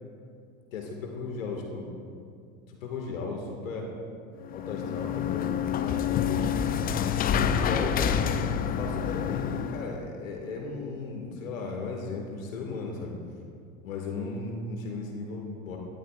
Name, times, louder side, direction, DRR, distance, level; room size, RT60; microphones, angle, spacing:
voice 1, 0.7-1.9 2.7-3.9 4.5-6.6 7.5-8.0 8.7-13.2 13.8-15.8, left 3 dB, 70° left, 1 dB, 2.0 m, -36 dB
sound 1, 4.4-10.0, left 8 dB, 20° left, 0.5 m, -28 dB
18.0 x 14.0 x 2.5 m, 2.3 s
figure-of-eight pair, 80°, 41 cm